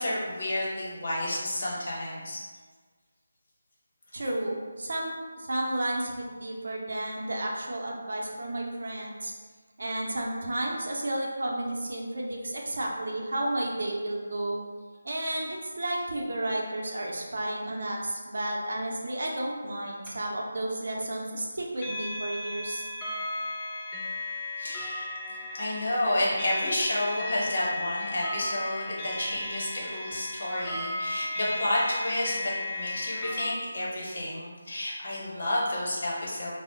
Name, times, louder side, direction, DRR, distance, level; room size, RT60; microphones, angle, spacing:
voice 1, 0.0-2.4 24.6-25.1 25.5-36.5, left 1 dB, 60° left, -5 dB, 0.9 m, -30 dB
voice 2, 4.1-9.3 9.8-14.6 15.0-22.8, right 1 dB, 70° right, -2 dB, 0.5 m, -32 dB
sound 1, 20.1-20.2 21.8-33.4, left 1 dB, 15° left, 0.4 m, -35 dB
2.1 x 2.0 x 3.7 m, 1.5 s
figure-of-eight pair, 160°, 0 cm